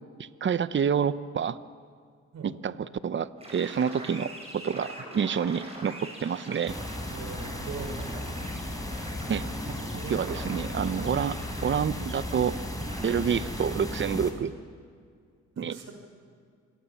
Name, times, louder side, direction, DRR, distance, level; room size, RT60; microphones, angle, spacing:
voice 1, 0.2-1.6 2.4-6.8 9.3-12.6 13.0-14.5 15.6-15.8, right 7 dB, 40° right, 14 dB, 0.9 m, -28 dB
sound 1, 3.4-14.2, right 1 dB, 20° right, 7.9 m, -44 dB
sound 2, 6.7-14.3, left 1 dB, 10° left, 4.0 m, -35 dB
voice 2, 7.1-8.1 9.9-10.4 15.6-15.9, right 5 dB, 60° right, 3 dB, 5.9 m, -40 dB
27.0 x 22.5 x 7.3 m, 2.1 s
cardioid pair, 90°, 30 cm